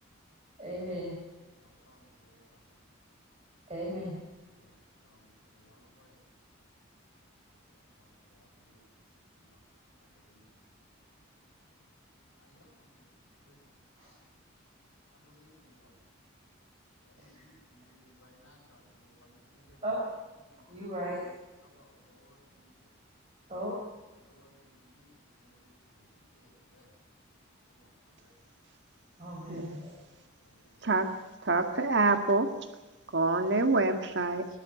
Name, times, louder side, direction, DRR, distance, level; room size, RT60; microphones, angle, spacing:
voice 1, 0.6-1.2 3.7-4.2 14.0-14.1 19.8-20.1 20.7-21.3 23.5-23.8 29.2-29.9, equal, 30° right, -4 dB, 5.9 m, -36 dB
voice 2, 1.6-2.4 4.5-4.7 5.0-5.2 5.5-6.1 8.0-8.1 8.4-8.8 10.3-10.4 12.4-12.9 13.4-13.6 15.2-15.9 17.0-19.8 21.6-22.7 24.3-25.1 25.4-25.7 26.4-26.9 27.7-27.9 28.2-28.3 30.4-30.8, left 1 dB, 90° left, -6 dB, 7.2 m, -63 dB
voice 3, 29.5-29.9 30.8-31.1 31.4-32.5 33.1-34.4, right 3 dB, 60° right, 6 dB, 1.9 m, -26 dB
22.5 x 13.0 x 9.3 m, 1.1 s
head